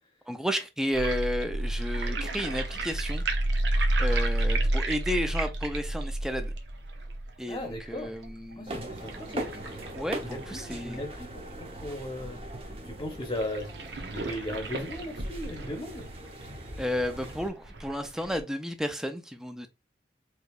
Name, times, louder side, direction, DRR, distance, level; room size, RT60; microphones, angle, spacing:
voice 1, 0.3-3.2 4.0-6.5 7.4-8.8 9.9-11.0 16.8-19.7, equal, 5° right, 0.5 m, -32 dB
sound 1, 0.9-11.9 12.4-12.5 12.6-12.7 13.3-18.4, right 1 dB, 75° right, 0.9 m, -31 dB
voice 2, 7.4-8.1 8.6-9.5 10.2-12.4 12.8-13.7 14.1-16.1, left 1 dB, 25° left, 0.9 m, -37 dB
sound 2, 8.7-17.5, right 1 dB, 30° right, 0.8 m, -40 dB
4.6 x 3.1 x 2.4 m
head